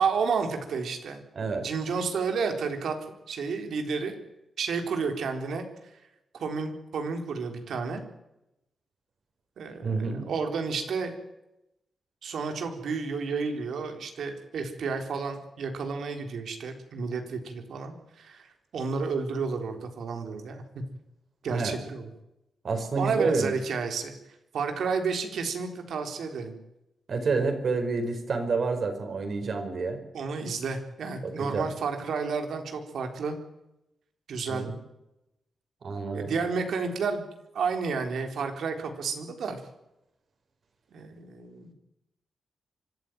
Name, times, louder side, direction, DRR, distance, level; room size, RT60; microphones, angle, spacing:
voice 1, 0.0-1.2 1.6-2.9 3.3-4.1 4.6-5.7 6.3-8.0 9.6-11.1 12.2-18.4 18.7-20.8 21.4-22.1 22.9-24.1 24.5-26.6 30.1-33.4 34.3-34.7 36.1-37.3 37.5-39.6 40.9-41.7, right 5 dB, 80° right, 5 dB, 3.9 m, -31 dB
voice 2, 1.3-1.7 9.8-10.3 21.5-21.8 22.6-23.5 27.1-30.0 31.2-31.7 34.5-34.8 35.8-36.3, right 4 dB, 50° right, 6 dB, 4.7 m, -29 dB
25.0 x 14.0 x 9.4 m, 0.88 s
wide cardioid pair, 160°, 0 cm